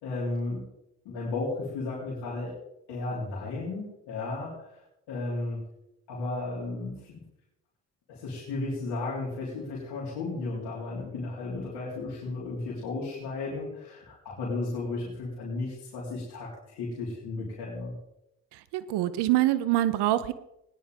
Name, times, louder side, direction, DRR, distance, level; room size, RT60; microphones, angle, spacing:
voice 1, 0.0-0.7 1.1-2.5 2.9-4.7 5.1-5.6 6.1-7.2 8.1-17.9, left 3 dB, 80° left, -6 dB, 3.8 m, -34 dB
voice 2, 18.5-20.3, right 15 dB, 80° right, 15 dB, 0.9 m, -25 dB
19.0 x 10.0 x 3.7 m, 0.83 s
supercardioid pair, 60°, 40 cm